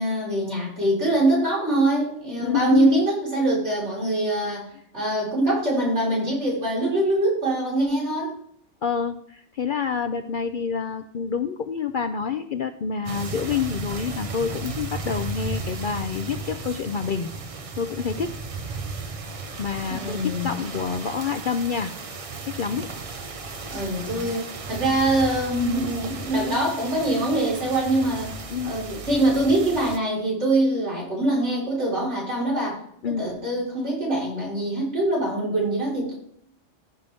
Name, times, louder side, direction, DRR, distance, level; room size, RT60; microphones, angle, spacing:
voice 1, 0.0-4.7 4.9-8.3 19.9-20.5 23.7-28.3 28.6-32.8 33.1-36.1, right 1 dB, 65° right, -6 dB, 4.8 m, -23 dB
voice 2, 2.4-3.0 8.8-17.3 17.8-18.3 19.6-21.9 22.4-22.9 28.5-28.8 33.0-33.2, left 6 dB, 55° left, 8 dB, 0.6 m, -27 dB
sound 1, 13.1-30.0, right 4 dB, 35° right, 0.7 m, -35 dB
15.5 x 5.4 x 3.5 m, 0.68 s
omnidirectional pair, 1.3 m